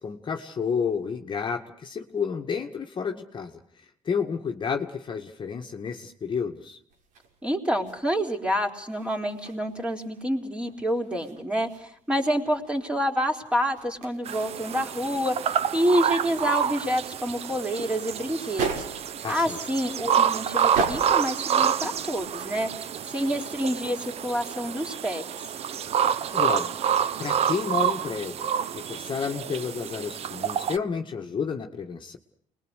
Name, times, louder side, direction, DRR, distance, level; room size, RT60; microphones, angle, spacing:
voice 1, 0.0-3.6 4.1-6.8 19.2-19.6 26.3-26.8 27.2-32.2, left 6 dB, 35° left, 3 dB, 2.0 m, -31 dB
sound 1, 6.9-22.7, right 4 dB, 85° right, 6.4 m, -39 dB
voice 2, 7.4-15.4 15.7-18.8 19.3-22.7 23.1-25.2, equal, 10° right, 3 dB, 4.0 m, -28 dB
sound 2, 14.3-30.8, right 9 dB, 50° right, 1.0 m, -28 dB
29.0 x 21.5 x 6.6 m, 0.63 s
cardioid pair, 135°, 13 cm